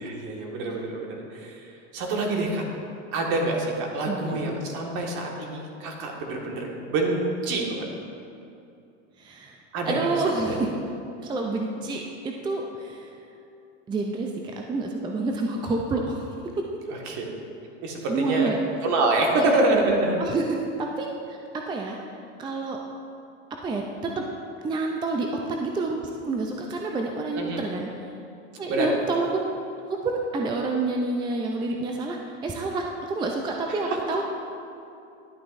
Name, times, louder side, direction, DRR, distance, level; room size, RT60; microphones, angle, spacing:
voice 1, 0.0-2.6 3.1-7.9 9.7-10.6 16.9-17.2 17.8-18.5 18.8-20.2 27.3-27.6 28.7-28.9 33.7-34.0, right 2 dB, 50° right, 0 dB, 1.8 m, -26 dB
voice 2, 4.1-4.5 9.2-9.6 9.9-10.7 11.2-13.1 13.9-14.3 14.6-16.4 18.1-18.6 19.4-19.5 20.2-22.0 22.4-22.8 23.6-24.3 24.6-27.9 28.6-29.4 29.9-32.2 32.4-34.2, right 3 dB, 15° right, 1 dB, 0.4 m, -28 dB
11.0 x 8.6 x 2.6 m, 2.6 s
hypercardioid pair, 115°, 36 cm